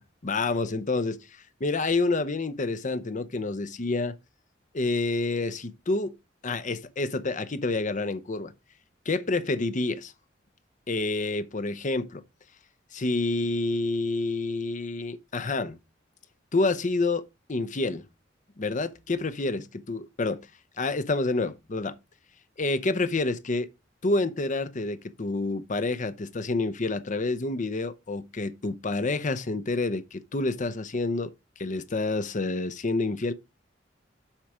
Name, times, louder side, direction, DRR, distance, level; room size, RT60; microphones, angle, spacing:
voice 1, 0.2-1.3 1.6-4.1 4.7-6.1 6.4-8.5 9.1-10.1 10.9-12.2 12.9-15.8 16.5-17.2 17.5-18.0 18.6-20.5 20.8-22.0 22.6-23.7 24.0-31.3 31.6-33.3, left 3 dB, 40° left, 0.8 m, -28 dB
7.3 x 4.9 x 4.9 m
head